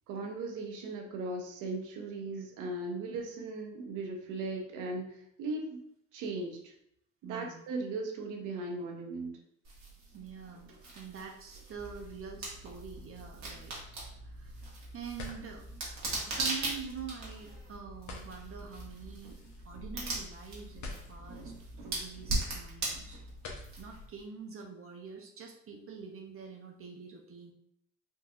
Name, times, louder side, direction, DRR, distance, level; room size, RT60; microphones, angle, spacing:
voice 1, 0.1-5.8 6.1-6.7 7.2-9.4, right 2 dB, 90° right, 1 dB, 0.7 m, -38 dB
voice 2, 7.2-7.6 10.1-13.8 14.2-14.7 14.9-15.6 16.3-19.4 19.6-23.2 23.8-27.5, right 6 dB, 50° right, 1 dB, 0.6 m, -46 dB
sound 1, 9.6-24.2, right 2 dB, 65° right, 1.3 m, -40 dB
sound 2, 11.7-24.0, left 1 dB, 70° left, 0.8 m, -48 dB
3.7 x 2.7 x 2.4 m, 0.74 s
cardioid pair, 90°, 30 cm